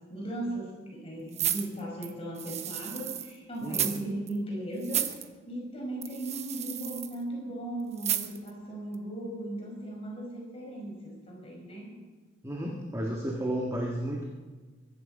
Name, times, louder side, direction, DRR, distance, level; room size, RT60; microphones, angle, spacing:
voice 1, 0.0-5.2 5.5-12.0, right 1 dB, 30° left, -2 dB, 5.2 m, -37 dB
sound 1, 1.3-3.3 3.6-4.0 4.3-4.4 4.8-5.2 6.0-7.1 8.0-8.5 8.9-9.0, right 10 dB, 35° right, 0.9 m, -32 dB
voice 2, 12.4-14.2, right 1 dB, 15° right, -1 dB, 1.6 m, -32 dB
23.0 x 11.0 x 5.4 m, 1.4 s
head